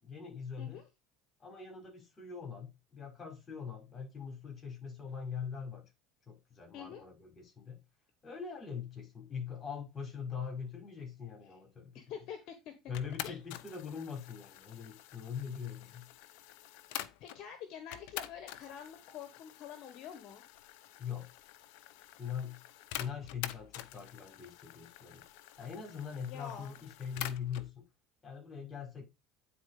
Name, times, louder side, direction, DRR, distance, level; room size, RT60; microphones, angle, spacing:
voice 1, 0.0-0.8 1.4-5.9 6.3-7.8 8.2-12.2 12.9-16.1 21.0-21.3 22.2-22.6 22.9-25.2 25.6-27.8 28.2-29.0, left 7 dB, 35° left, 5.8 m, -42 dB
voice 2, 11.9-12.7 13.2-13.4 15.8-15.9 17.2-20.4 26.3-26.8, left 8 dB, 60° left, 1.5 m, -46 dB
sound 1, 12.9-17.4 17.9-27.7, left 14 dB, 75° left, 0.8 m, -47 dB
9.6 x 4.3 x 5.0 m
supercardioid pair, 95°, 0 cm